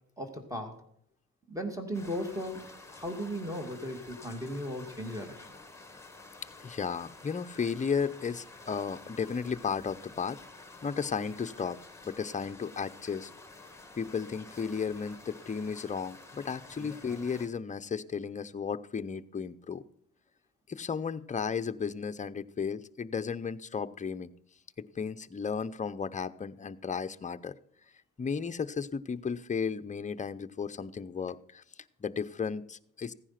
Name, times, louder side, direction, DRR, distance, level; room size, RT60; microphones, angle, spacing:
voice 1, 0.2-0.8 1.5-5.5 16.8-16.9, equal, 10° right, 5 dB, 2.3 m, -37 dB
sound 1, 1.9-17.5, left 3 dB, 10° left, 1.9 m, -51 dB
voice 2, 6.6-10.4 10.8-11.8 12.0-13.3 14.0-19.8 20.7-24.3 24.8-27.5 28.2-31.6 32.0-33.1, left 6 dB, 25° left, 11 dB, 0.7 m, -34 dB
15.0 x 9.8 x 5.9 m, 0.69 s
cardioid pair, 90°, 30 cm